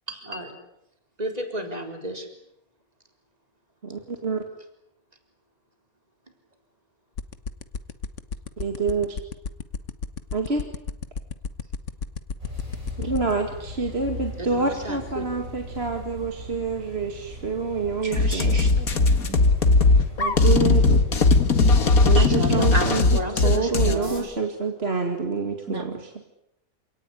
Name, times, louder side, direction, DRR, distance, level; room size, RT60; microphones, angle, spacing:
voice 1, 0.1-0.5 1.2-2.3 14.4-15.3 22.1-24.3, right 1 dB, 25° right, 4 dB, 4.3 m, -31 dB
voice 2, 3.8-4.4 8.6-9.1 10.3-10.7 13.0-18.6 20.2-21.0 22.0-23.0 23.4-26.1, right 4 dB, 45° right, 4 dB, 2.4 m, -27 dB
sound 1, 7.2-13.3, left 5 dB, 55° left, 1.6 m, -30 dB
sound 2, 12.4-24.2, equal, 70° right, 8.0 m, -40 dB
voice 3, 18.0-19.4 21.7-22.7 25.7-25.9, right 4 dB, 85° right, 5 dB, 4.1 m, -36 dB
sound 3, 18.1-24.0, left 3 dB, 75° left, 2.3 m, -18 dB
28.5 x 18.0 x 9.9 m, 0.81 s
omnidirectional pair, 1.5 m